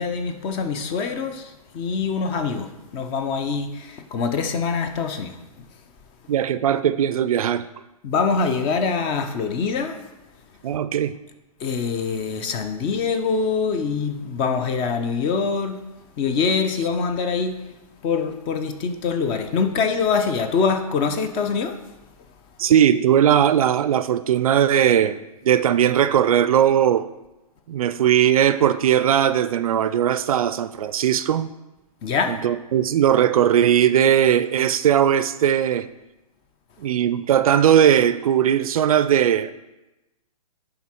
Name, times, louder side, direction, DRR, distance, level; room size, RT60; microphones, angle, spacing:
voice 1, 0.0-5.7 8.0-10.0 11.6-15.8 16.2-17.6 18.0-21.8 32.0-32.4, left 5 dB, 25° left, 0.7 m, -24 dB
voice 2, 6.3-7.7 10.6-11.2 22.6-25.2 25.4-27.1 27.7-31.5 32.3-35.9 36.8-39.5, right 10 dB, 65° right, 0.5 m, -19 dB
11.0 x 3.7 x 4.4 m
hypercardioid pair, 135°, 20 cm